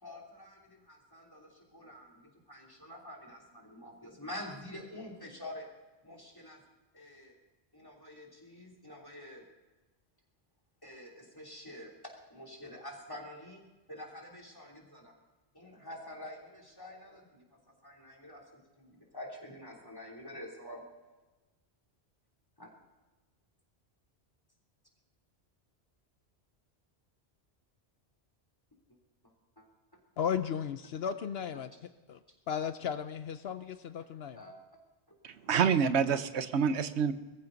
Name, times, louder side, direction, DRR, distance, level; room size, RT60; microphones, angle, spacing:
voice 1, 0.0-5.7 6.0-6.6 6.9-7.4 7.7-9.4 10.8-13.6 13.9-15.1 15.5-20.8 22.6-22.7 29.6-29.7 34.3-34.5 35.1-35.2 36.1-36.2, left 1 dB, 20° left, 1 dB, 3.3 m, -47 dB
voice 2, 30.2-31.7 32.1-32.2 32.5-34.4, left 8 dB, 70° left, 11 dB, 0.9 m, -35 dB
voice 3, 35.2-37.1, right 6 dB, 90° right, 12 dB, 1.1 m, -27 dB
21.5 x 14.5 x 4.0 m, 1.2 s
omnidirectional pair, 1.1 m